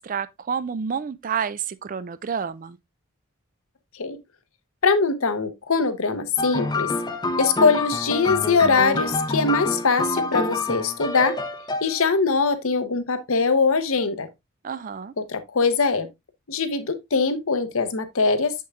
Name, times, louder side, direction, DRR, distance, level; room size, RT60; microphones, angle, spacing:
voice 1, 0.0-2.8 14.6-15.1, right 6 dB, 35° right, 0.3 m, -29 dB
voice 2, 4.8-6.9 7.4-11.4 11.8-14.3 15.3-16.1 16.5-18.5, left 4 dB, 65° left, 0.8 m, -22 dB
sound 1, 6.4-12.1, left 2 dB, 20° left, 0.6 m, -27 dB
6.9 x 6.4 x 2.3 m
head